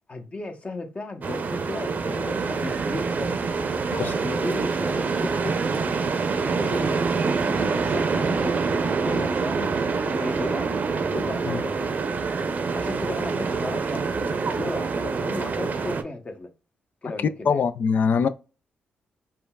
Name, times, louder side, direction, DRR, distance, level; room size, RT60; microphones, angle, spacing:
voice 1, 0.1-3.4 4.0-6.0 6.6-8.6 9.0-10.7 11.1-11.9 12.7-16.5 17.0-17.6, left 2 dB, 35° left, 0.9 m, -35 dB
sound 1, 1.2-16.0, right 4 dB, 50° right, 0.6 m, -26 dB
voice 2, 17.2-18.3, left 6 dB, 60° left, 0.3 m, -23 dB
5.2 x 2.2 x 2.3 m
supercardioid pair, 55°, 4 cm